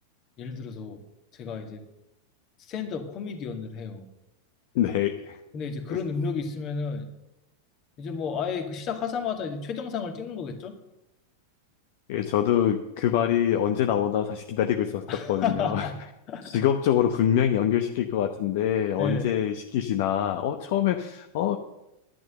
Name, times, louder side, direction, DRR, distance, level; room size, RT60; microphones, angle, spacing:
voice 1, 0.4-1.0 1.3-1.8 2.6-4.1 5.5-7.1 8.0-10.7 15.1-16.0 16.3-16.6 19.0-19.3, left 5 dB, 35° left, 5 dB, 2.0 m, -32 dB
voice 2, 4.7-5.4 5.9-6.0 12.1-15.9 16.4-21.6, left 10 dB, 50° left, 6 dB, 0.9 m, -25 dB
11.0 x 10.5 x 6.8 m, 0.90 s
figure-of-eight pair, 90°, 0 cm